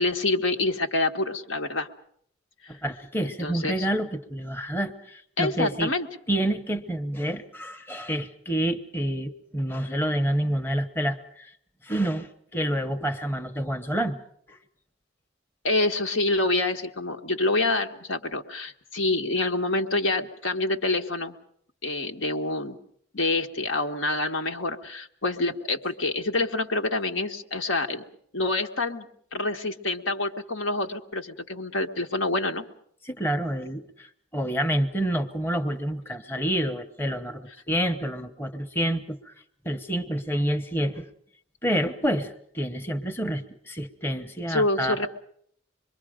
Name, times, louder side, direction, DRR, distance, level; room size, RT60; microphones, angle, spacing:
voice 1, 0.0-1.9 3.2-3.8 5.4-6.1 15.6-21.3 21.8-22.8 23.1-28.0 28.3-32.6 44.5-45.1, left 2 dB, 80° left, 4 dB, 1.4 m, -27 dB
voice 2, 2.7-5.9 6.3-11.5 11.8-14.2 14.5-14.6 33.0-34.1 34.3-39.3 39.6-41.1 41.6-45.1, right 1 dB, 10° left, 5 dB, 0.9 m, -28 dB
26.0 x 22.5 x 5.1 m, 0.66 s
head